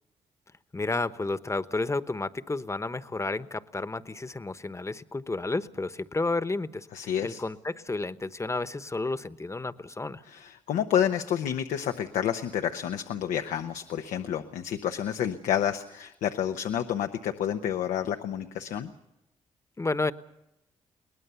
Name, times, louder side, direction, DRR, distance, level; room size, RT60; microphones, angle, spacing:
voice 1, 0.7-6.9 7.2-10.2 19.8-20.1, left 3 dB, 25° left, 13 dB, 1.1 m, -31 dB
voice 2, 6.9-7.4 10.3-18.9, left 9 dB, 85° left, 6 dB, 0.9 m, -29 dB
22.0 x 19.5 x 6.9 m, 0.89 s
supercardioid pair, 55°, 12 cm